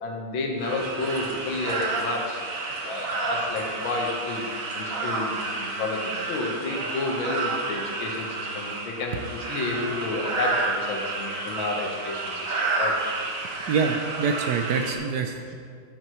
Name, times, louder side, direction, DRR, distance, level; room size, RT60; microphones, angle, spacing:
voice 1, 0.0-2.4 2.9-4.5 4.7-13.0, left 2 dB, 65° left, 1 dB, 1.9 m, -31 dB
sound 1, 0.6-15.0, right 3 dB, 50° right, 1.2 m, -30 dB
voice 2, 13.7-15.6, right 5 dB, 85° right, 5 dB, 0.9 m, -26 dB
12.5 x 8.4 x 3.1 m, 2.2 s
omnidirectional pair, 2.4 m